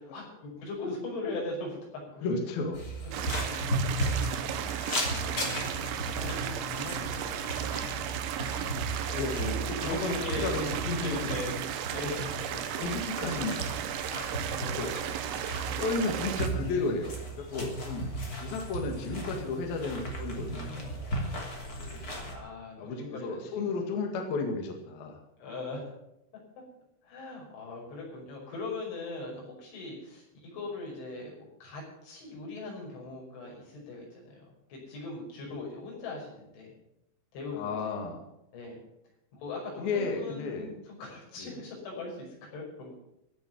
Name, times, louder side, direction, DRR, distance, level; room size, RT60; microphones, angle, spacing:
voice 1, 0.0-1.8 2.1-2.2 3.2-3.6 4.2-5.7 6.1-7.8 8.8-9.0 9.8-11.6 11.9-12.4 14.1-14.3 14.7-14.8 15.7-16.1 22.0-23.6 25.4-25.9 27.0-34.4 34.7-36.7 37.3-37.9 38.5-38.8 39.4-42.9, left 2 dB, 85° left, -2 dB, 7.9 m, -40 dB
voice 2, 2.2-2.8 9.1-10.6 10.9-11.2 12.5-13.8 14.6-14.9 15.8-18.1 18.4-20.9 21.8-22.0 22.8-25.2 37.5-38.2 39.8-40.7 41.4-41.7, left 3 dB, 60° left, 3 dB, 3.5 m, -33 dB
sound 1, 2.7-22.4, right 1 dB, 25° left, 2.8 m, -36 dB
sound 2, 3.1-16.5, right 10 dB, 85° right, 3.5 m, -35 dB
15.5 x 7.9 x 9.3 m, 0.83 s
omnidirectional pair, 5.3 m